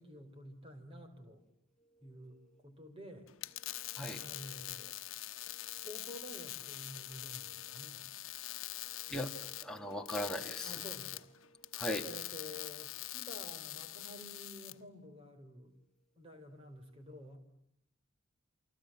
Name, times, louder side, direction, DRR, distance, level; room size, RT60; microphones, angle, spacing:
voice 1, 0.0-1.4 2.0-3.3 4.2-5.0 5.8-8.1 10.6-11.3 12.1-15.7 16.2-17.4, equal, 25° right, 6 dB, 4.1 m, -51 dB
sound 1, 3.3-14.7, left 15 dB, 80° left, 1.1 m, -44 dB
voice 2, 4.0-4.3 9.1-10.8 11.8-12.1, left 1 dB, 5° left, 2 dB, 2.0 m, -39 dB
29.0 x 25.5 x 7.4 m, 0.73 s
head